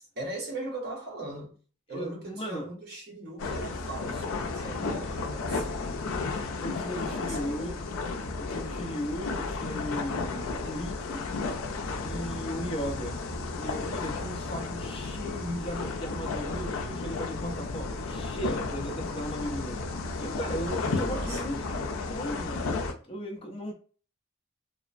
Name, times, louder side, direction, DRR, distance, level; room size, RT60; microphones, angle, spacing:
voice 1, 0.2-1.6 1.9-6.0 6.3-7.8 20.2-21.5, right 2 dB, 50° right, 0.8 m, -40 dB
voice 2, 1.9-2.7 6.6-7.8 8.4-11.3 12.0-13.2 13.6-19.8 20.2-22.7 23.0-23.7, equal, 25° left, 0.5 m, -36 dB
sound 1, 3.4-22.9, left 3 dB, 80° left, 0.4 m, -33 dB
2.9 x 2.0 x 2.5 m
head